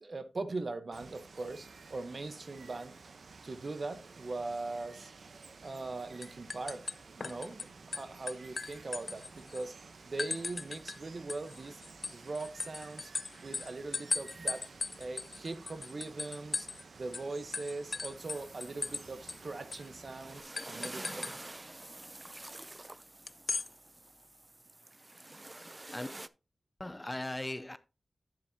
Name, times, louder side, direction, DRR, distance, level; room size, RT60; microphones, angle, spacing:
voice 1, 0.0-3.0 3.4-5.1 5.5-9.7 10.1-11.8 12.1-13.1 13.4-14.6 15.0-16.7 16.9-21.3, right 3 dB, 55° right, 1.0 m, -41 dB
Water, 0.9-20.4, right 4 dB, 85° right, 0.8 m, -53 dB
sound 1, 5.6-5.9 6.2-7.6 7.9-9.6 10.2-11.0 11.3-16.8 17.1-17.3 17.5-19.0 19.3-19.4 19.7-19.9 20.6-21.3 23.3-23.7, left 4 dB, 60° left, 0.3 m, -38 dB
sound 2, 18.2-26.3, right 2 dB, 25° right, 0.4 m, -48 dB
voice 2, 26.8-27.8, left 1 dB, 20° left, 0.6 m, -38 dB
10.5 x 7.3 x 2.8 m
wide cardioid pair, 100°, 0 cm